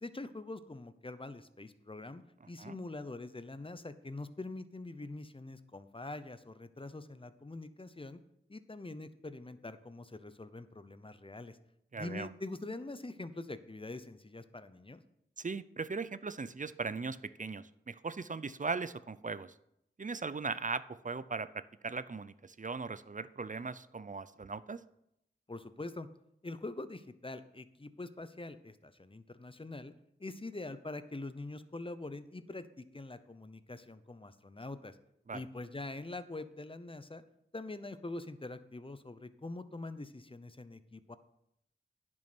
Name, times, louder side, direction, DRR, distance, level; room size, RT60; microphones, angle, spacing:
voice 1, 0.0-8.2 8.5-11.6 12.0-15.0 25.5-26.1 26.4-29.9 30.2-35.0 35.3-37.2 37.5-41.2, left 2 dB, 25° left, 12 dB, 0.8 m, -44 dB
voice 2, 11.9-12.3 15.4-19.5 20.0-24.8 35.3-35.4, right 4 dB, 40° right, 15 dB, 0.5 m, -39 dB
10.5 x 6.3 x 6.0 m, 0.79 s
wide cardioid pair, 45°, 21 cm